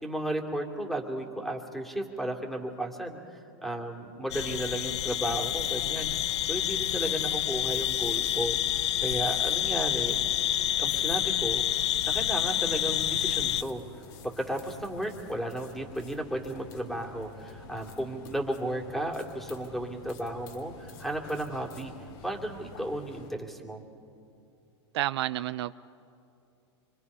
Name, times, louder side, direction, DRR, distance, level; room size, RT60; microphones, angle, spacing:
voice 1, 0.0-8.6 9.0-10.2 10.8-11.6 12.1-13.8 14.2-21.9 22.2-23.8, right 1 dB, ahead, 2 dB, 2.6 m, -34 dB
sound 1, 4.3-13.6, left 12 dB, 75° left, 0.6 m, -28 dB
sound 2, 12.7-23.3, left 4 dB, 55° left, 2.8 m, -49 dB
voice 2, 24.9-25.8, right 14 dB, 65° right, 14 dB, 0.5 m, -30 dB
25.5 x 25.0 x 5.5 m, 2.6 s
hypercardioid pair, 115°, 15 cm